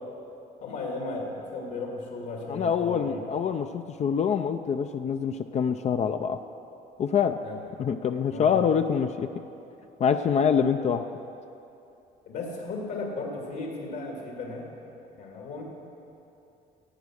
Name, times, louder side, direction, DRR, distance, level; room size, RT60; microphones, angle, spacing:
voice 1, 0.6-3.2 7.4-7.6 8.3-8.6 12.3-14.7 15.2-15.6, left 3 dB, 75° left, -1 dB, 2.6 m, -35 dB
voice 2, 2.5-6.4 7.0-7.4 7.8-9.3 10.0-11.0, left 7 dB, 40° left, 7 dB, 0.5 m, -25 dB
17.0 x 8.1 x 6.4 m, 2.8 s
cardioid pair, 110°, 17 cm